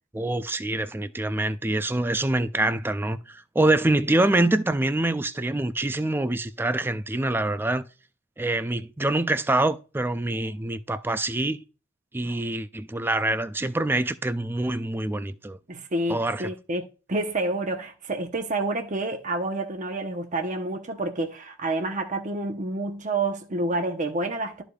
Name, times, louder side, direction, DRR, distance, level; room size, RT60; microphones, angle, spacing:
voice 1, 0.1-7.8 8.4-11.6 12.1-15.6 16.1-16.5, right 2 dB, 10° right, 0.4 m, -25 dB
voice 2, 15.7-24.6, right 2 dB, 40° right, 0.8 m, -29 dB
12.5 x 5.0 x 2.3 m
head